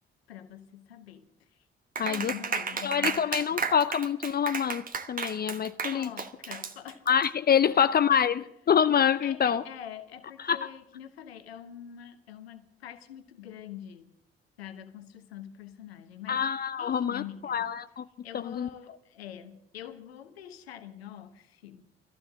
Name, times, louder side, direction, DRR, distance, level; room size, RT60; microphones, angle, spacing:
voice 1, 0.3-1.7 2.0-3.7 5.9-7.1 7.6-8.5 9.2-14.2 14.6-17.7 18.2-21.9, left 10 dB, 80° left, 1.1 m, -45 dB
voice 2, 2.0-2.3 2.8-6.1 7.1-9.6 10.5-10.6 16.3-18.1 18.3-18.7, left 8 dB, 30° left, 0.6 m, -26 dB
Clapping, 2.0-7.3, right 5 dB, 30° right, 1.2 m, -33 dB
23.5 x 15.0 x 3.7 m
figure-of-eight pair, 45°, 31 cm